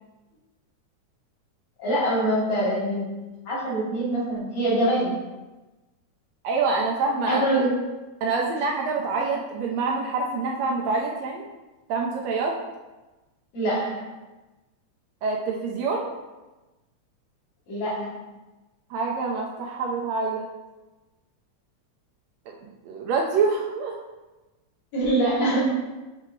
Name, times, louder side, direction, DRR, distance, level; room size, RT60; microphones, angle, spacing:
voice 1, 1.8-3.1 3.5-5.1 7.3-7.7 13.5-14.1 17.7-18.1 24.9-25.6, right 1 dB, 65° left, -9 dB, 3.2 m, -24 dB
voice 2, 6.4-7.4 8.2-11.4 11.9-12.6 15.2-16.1 18.9-20.5 22.5-22.6 22.9-24.0, right 4 dB, 75° right, 0 dB, 1.6 m, -26 dB
6.7 x 4.7 x 3.0 m, 1.1 s
omnidirectional pair, 3.3 m